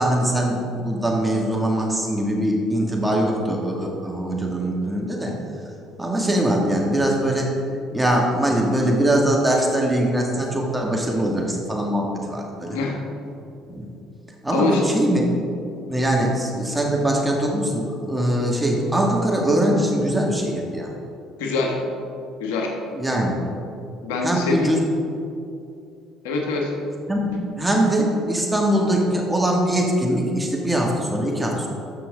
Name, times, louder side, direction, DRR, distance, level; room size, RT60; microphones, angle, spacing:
voice 1, 0.0-5.4 6.0-7.5 7.9-12.8 13.7-13.9 14.4-15.3 15.9-20.9 22.9-23.4 24.2-24.8 27.1-31.7, right 1 dB, 10° right, -1 dB, 2.0 m, -22 dB
voice 2, 12.7-13.0 14.5-14.8 16.2-16.3 21.4-21.8 22.4-22.7 24.0-24.7 26.2-26.7, left 3 dB, 80° left, 1 dB, 1.2 m, -24 dB
14.0 x 6.0 x 3.7 m, 2.6 s
hypercardioid pair, 65°, 0 cm